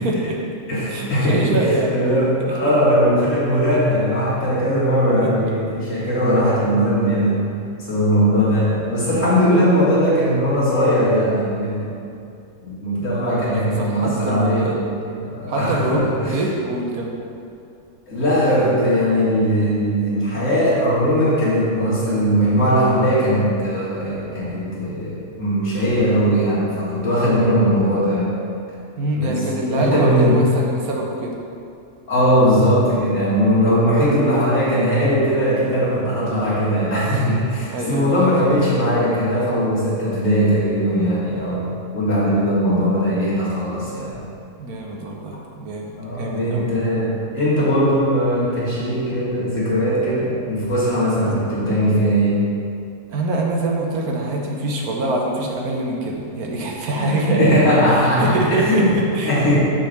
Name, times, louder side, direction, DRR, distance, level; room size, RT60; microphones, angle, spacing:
voice 1, 0.0-0.4 0.9-1.9 2.5-2.7 5.2-5.3 9.5-9.8 13.0-13.4 13.8-14.8 15.5-17.2 29.0-31.4 37.6-38.4 44.6-46.7 51.3-51.4 53.1-59.6, right 2 dB, 80° right, 0 dB, 1.4 m, -24 dB
voice 2, 0.7-7.5 7.8-11.9 12.6-14.8 15.0-16.4 18.1-28.4 29.2-29.4 29.7-30.5 32.1-44.2 46.0-52.4 56.9-59.0 59.2-59.6, equal, 60° left, -8 dB, 2.3 m, -19 dB
6.1 x 4.3 x 6.5 m, 2.5 s
omnidirectional pair, 1.6 m